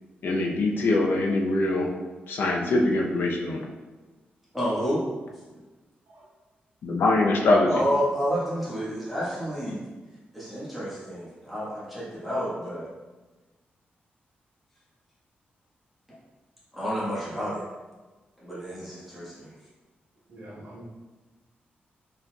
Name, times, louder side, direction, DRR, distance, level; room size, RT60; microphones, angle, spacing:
voice 1, 0.2-1.9 2.3-3.6 6.8-7.7, left 2 dB, 75° left, 0 dB, 0.6 m, -23 dB
voice 2, 4.5-5.0 7.7-9.8 10.3-12.9 16.7-17.6 18.4-19.5, equal, 5° right, -9 dB, 1.3 m, -30 dB
voice 3, 20.3-20.8, right 1 dB, 75° right, -9 dB, 1.1 m, -45 dB
4.2 x 3.9 x 2.3 m, 1.2 s
wide cardioid pair, 150°, 4 cm